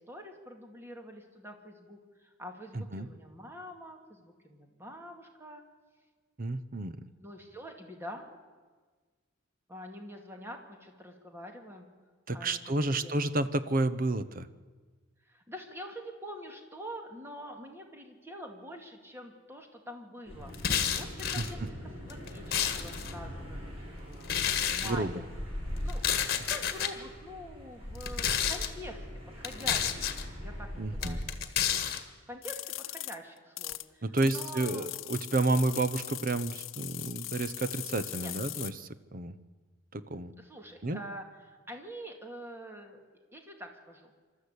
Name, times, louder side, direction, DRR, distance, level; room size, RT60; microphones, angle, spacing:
voice 1, 0.1-5.6 7.2-8.3 9.7-11.9 12.3-12.6 12.9-13.2 15.3-21.8 22.1-24.3 24.7-25.4 25.8-26.0 26.5-29.1 29.3-30.1 30.4-31.3 32.3-32.6 32.9-34.9 38.2-38.3 40.1-43.0 43.3-44.1, equal, 10° right, 3 dB, 2.3 m, -45 dB
voice 2, 2.7-3.1 6.4-7.0 12.3-14.5 21.4-21.7 24.8-25.2 30.8-31.2 34.0-39.4 39.9-40.3 40.8-41.0, right 2 dB, 45° right, 13 dB, 0.9 m, -31 dB
sound 1, 20.2-31.2, equal, 30° right, 6.1 m, -41 dB
sound 2, 20.5-21.5 22.1-23.1 24.2-24.9 25.9-26.9 27.9-28.7 29.4-30.2 31.0-32.0, left 8 dB, 50° left, 1.6 m, -30 dB
sound 3, 32.4-33.8 34.2-38.7, left 16 dB, 85° left, 0.7 m, -40 dB
27.0 x 13.5 x 8.2 m, 1.4 s
head